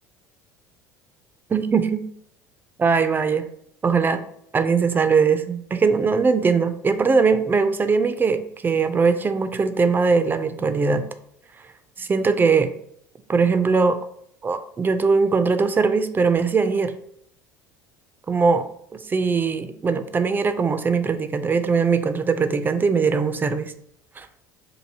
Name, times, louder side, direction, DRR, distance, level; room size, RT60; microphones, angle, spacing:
voice 1, 1.5-2.0 2.8-3.4 3.8-4.2 4.5-11.1 12.0-12.7 13.3-14.0 14.4-16.9 18.3-18.7 18.9-23.7 24.2-24.3, right 5 dB, 20° right, 10 dB, 0.4 m, -20 dB
4.5 x 2.6 x 2.7 m, 0.69 s
figure-of-eight pair, 65°, 10 cm